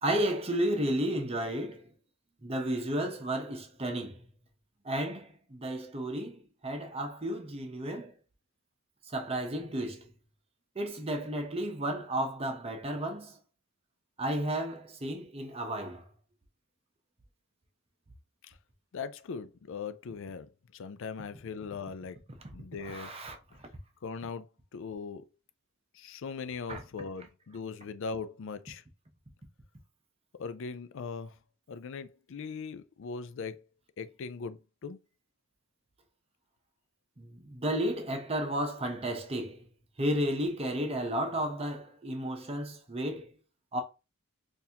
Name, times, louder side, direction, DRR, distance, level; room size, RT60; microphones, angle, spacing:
voice 1, 0.0-1.9 2.4-4.2 4.8-8.1 9.1-10.0 10.8-13.3 14.2-16.0 22.8-23.4 26.7-26.8 37.2-39.6 40.0-43.3 43.7-43.8, right 1 dB, 30° right, 0.8 m, -32 dB
voice 2, 18.9-22.2 22.5-23.1 24.0-25.2 25.9-28.8 30.4-31.3 31.7-33.6 34.0-35.0, left 5 dB, 65° left, 0.4 m, -40 dB
4.0 x 2.7 x 2.8 m
head